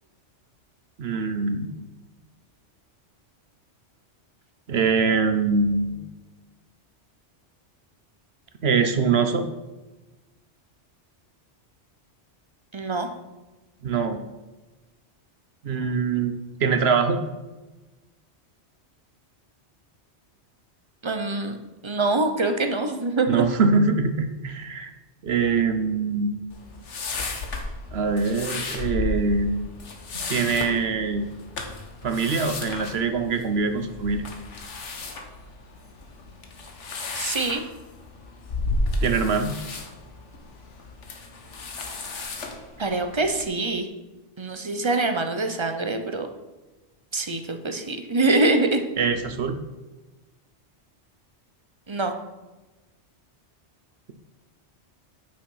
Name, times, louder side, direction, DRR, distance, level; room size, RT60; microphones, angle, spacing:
voice 1, 1.0-1.7 4.7-6.0 8.6-9.5 13.8-14.2 15.6-16.3 16.6-17.2 23.3-24.9 25.2-26.4 27.9-29.7 30.3-31.3 32.0-34.2 39.0-39.6 49.0-49.6, right 4 dB, 65° right, 8 dB, 1.0 m, -23 dB
voice 2, 12.7-13.1 21.0-21.6 21.8-23.4 37.1-37.6 42.8-43.9 44.4-46.3 47.1-48.8 51.9-52.1, right 2 dB, 30° right, 7 dB, 0.8 m, -24 dB
sound 1, 26.5-43.4, left 2 dB, 85° left, 1.5 m, -33 dB
8.9 x 6.5 x 5.6 m, 1.2 s
omnidirectional pair, 1.2 m